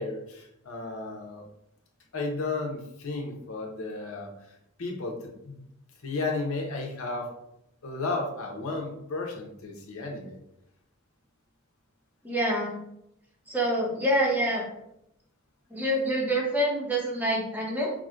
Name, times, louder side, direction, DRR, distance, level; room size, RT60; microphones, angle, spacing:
voice 1, 0.0-1.4 2.1-4.3 4.8-5.2 5.4-5.6 6.0-7.3 7.8-10.4, left 3 dB, 80° left, 1 dB, 0.8 m, -33 dB
voice 2, 12.2-12.8 13.5-14.7 15.7-17.9, right 1 dB, 10° right, -2 dB, 0.8 m, -26 dB
5.9 x 2.1 x 2.4 m, 0.80 s
head